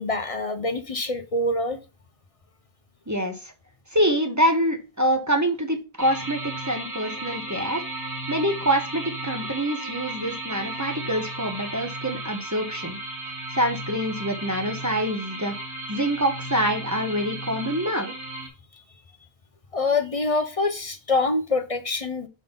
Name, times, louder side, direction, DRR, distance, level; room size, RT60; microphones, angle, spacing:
voice 1, 0.0-1.8 18.7-18.8 19.7-22.3, left 2 dB, 40° left, 0.6 m, -25 dB
voice 2, 3.1-3.5 3.9-7.8 8.3-13.0 13.5-15.6 15.9-18.1, equal, 20° right, 0.8 m, -25 dB
sound 1, 6.0-18.5, right 2 dB, 80° right, 1.9 m, -34 dB
5.6 x 3.8 x 5.1 m
omnidirectional pair, 1.1 m